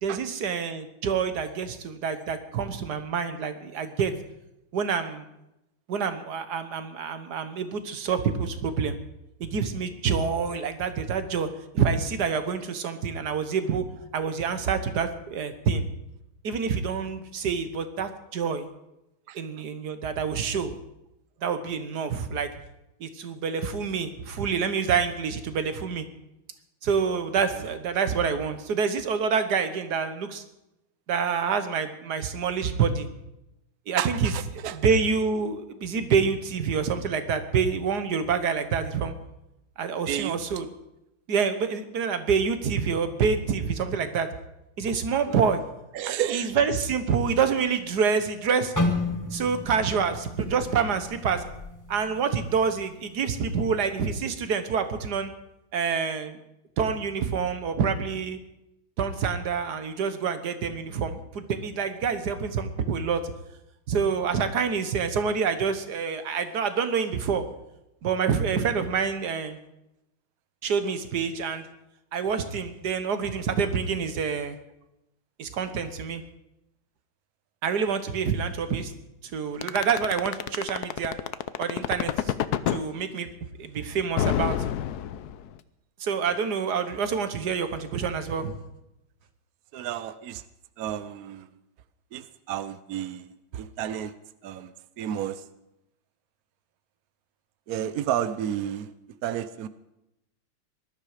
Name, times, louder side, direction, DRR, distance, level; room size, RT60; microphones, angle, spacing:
voice 1, 0.0-4.1 4.7-5.3 5.9-9.0 9.4-11.5 11.7-13.8 14.1-15.8 16.4-18.7 19.3-20.7 21.4-22.5 23.0-26.1 26.8-30.4 31.1-33.1 33.9-34.3 34.7-39.1 39.8-40.6 41.3-44.3 44.8-45.6 46.1-48.7 49.3-51.4 51.9-55.3 55.7-56.4 56.8-58.4 59.0-63.2 63.9-67.4 68.0-69.6 70.6-71.6 72.1-74.5 75.4-76.2 77.6-78.9 79.3-81.1 81.6-82.3 82.7-83.3 83.6-84.6 86.0-88.5, right 6 dB, 55° right, 10 dB, 1.6 m, -27 dB
voice 2, 34.0-34.8 40.1-40.4 45.3-45.4 45.9-46.5 86.3-86.4 89.7-90.4 90.8-91.5 92.1-94.1 94.4-95.4 97.7-98.9 99.2-99.7, right 11 dB, 80° right, 13 dB, 0.8 m, -32 dB
sound 1, 48.8-52.8 53.1-53.4 54.1-54.4, left 2 dB, 10° left, 1.2 m, -32 dB
sound 2, 79.6-82.8 84.2-85.6, left 11 dB, 75° left, 0.9 m, -27 dB
19.5 x 12.5 x 5.0 m, 0.88 s
omnidirectional pair, 2.4 m